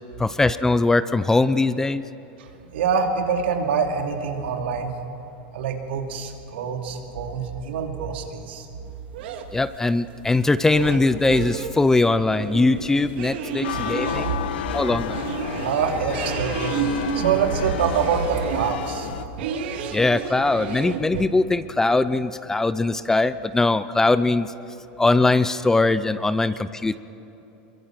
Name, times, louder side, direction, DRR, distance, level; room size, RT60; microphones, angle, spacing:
voice 1, 0.2-2.0 9.5-14.3 14.7-15.2 19.9-24.5 25.0-27.0, left 3 dB, 10° left, 14 dB, 0.5 m, -21 dB
voice 2, 2.4-4.9 5.5-8.7 13.7-13.9 14.2-14.5 15.6-16.7 17.1-19.2, right 6 dB, 90° right, 3 dB, 2.6 m, -25 dB
sound 1, 8.8-21.3, right 6 dB, 75° right, 1.9 m, -32 dB
sound 2, 13.6-19.2, left 9 dB, 85° left, 1.2 m, -31 dB
23.5 x 23.0 x 5.9 m, 2.9 s
supercardioid pair, 145°, 6 cm